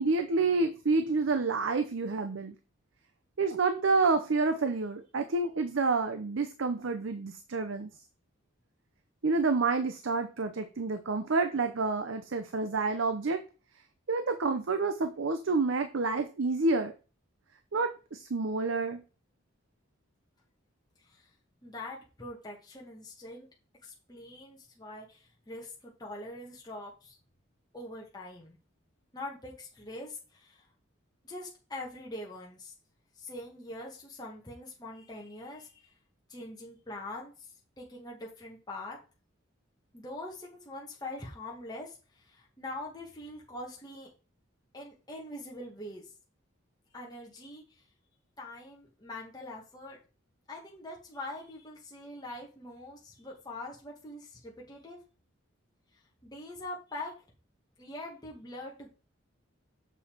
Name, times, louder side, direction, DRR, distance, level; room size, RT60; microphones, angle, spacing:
voice 1, 0.0-2.5 3.4-7.9 9.2-13.4 14.1-16.9 17.7-19.0, right 3 dB, 70° right, 8 dB, 0.6 m, -28 dB
voice 2, 21.6-23.5 23.8-27.2 27.7-28.6 29.1-30.7 31.2-32.7 33.2-35.9 36.3-37.3 37.8-39.0 39.9-44.1 44.7-46.0 46.9-47.8 48.4-50.0 50.5-55.0 56.2-57.1 57.8-58.9, left 1 dB, 20° left, -2 dB, 1.4 m, -43 dB
7.0 x 4.1 x 4.4 m, 0.33 s
head